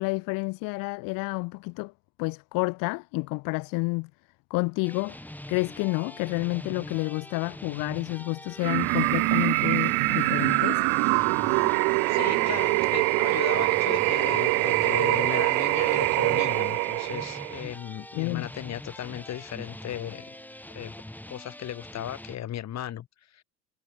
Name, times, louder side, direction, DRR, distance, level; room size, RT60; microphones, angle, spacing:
voice 1, 0.0-1.9 2.2-4.1 4.5-5.2 5.5-10.8 18.2-18.4, left 27 dB, 60° left, 1.1 m, -29 dB
sound 1, 4.8-22.4, left 1 dB, 5° left, 5.0 m, -43 dB
sound 2, 8.6-17.6, right 40 dB or more, 60° right, 0.7 m, -24 dB
voice 2, 12.1-20.4 20.7-20.9 21.3-23.4, left 11 dB, 45° left, 2.9 m, -36 dB
hypercardioid pair, 70°, 38 cm